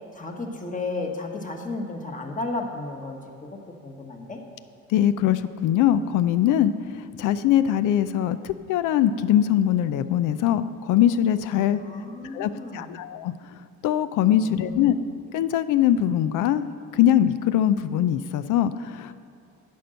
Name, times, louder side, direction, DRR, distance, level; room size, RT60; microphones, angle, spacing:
voice 1, 0.1-3.2 3.8-4.4 11.5-12.9 14.4-14.9, left 3 dB, 25° left, 3 dB, 1.4 m, -33 dB
voice 2, 4.9-11.8 12.3-13.3 13.8-14.9 15.3-16.7 16.9-19.1, left 11 dB, 70° left, 13 dB, 0.5 m, -22 dB
10.5 x 5.4 x 7.7 m, 2.4 s
supercardioid pair, 85°, 32 cm